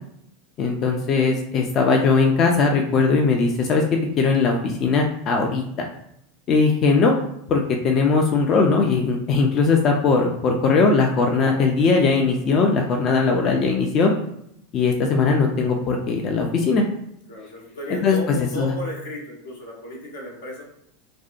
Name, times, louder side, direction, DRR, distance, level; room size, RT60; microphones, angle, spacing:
voice 1, 0.6-3.8 4.2-5.9 6.5-7.1 7.5-14.1 14.7-16.8 17.9-18.7, left 4 dB, 40° left, 2 dB, 0.4 m, -19 dB
voice 2, 17.3-20.6, equal, 85° left, -2 dB, 0.8 m, -34 dB
2.5 x 2.1 x 2.4 m, 0.74 s
hypercardioid pair, 95°, 0 cm